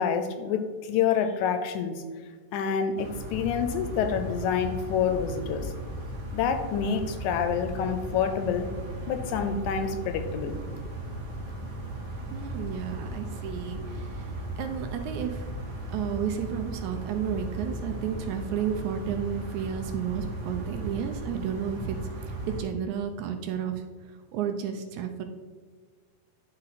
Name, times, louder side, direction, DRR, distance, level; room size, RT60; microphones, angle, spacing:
voice 1, 0.0-2.0 2.5-5.7 6.3-8.7 9.1-10.6, left 7 dB, 80° left, 8 dB, 1.8 m, -27 dB
sound 1, 3.0-22.6, right 1 dB, 45° right, 1.5 m, -36 dB
voice 2, 12.3-15.5 15.9-25.2, right 8 dB, 80° right, 6 dB, 1.8 m, -32 dB
10.5 x 4.0 x 4.1 m, 1.5 s
omnidirectional pair, 3.7 m